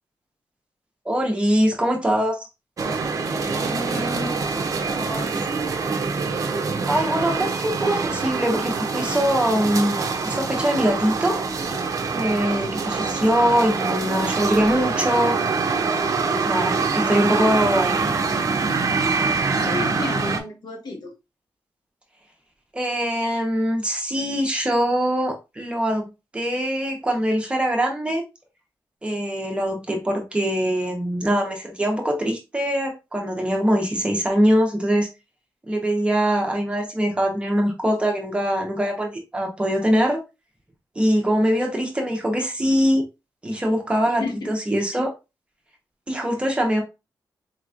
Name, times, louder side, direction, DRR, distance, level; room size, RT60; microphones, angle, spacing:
voice 1, 1.0-2.4 6.9-11.4 12.1-15.4 16.2-18.0 22.7-28.2 29.0-35.1 35.7-40.2 41.0-43.0 43.4-45.1 46.1-46.8, equal, 15° right, 1.0 m, -22 dB
sound 1, 2.8-20.4, right 4 dB, 50° right, 0.6 m, -25 dB
voice 2, 3.4-4.4 4.8-5.4 19.6-21.2 44.1-44.6 46.4-46.5, left 2 dB, 65° left, 1.1 m, -32 dB
4.3 x 3.0 x 2.5 m
wide cardioid pair, 140°, 8 cm